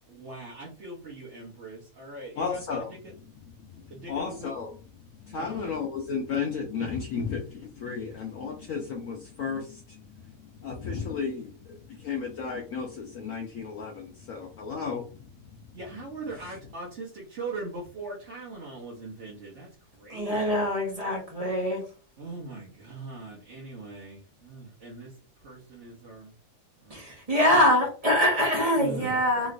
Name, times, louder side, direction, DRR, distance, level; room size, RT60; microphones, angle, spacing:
voice 1, 0.1-2.8 3.9-4.5 5.4-5.7 15.7-19.7 19.9-20.7 22.2-25.1 25.4-26.3 26.8-27.0 27.5-27.7 28.8-29.2, right 2 dB, 50° right, -5 dB, 1.1 m, -40 dB
voice 2, 2.4-2.9 3.4-4.8 5.2-15.3 16.3-16.6, left 5 dB, 65° left, 0 dB, 0.9 m, -34 dB
voice 3, 20.1-21.8 26.9-29.5, left 1 dB, 30° right, 0 dB, 0.8 m, -24 dB
3.1 x 3.1 x 2.4 m, 0.37 s
omnidirectional pair, 1.7 m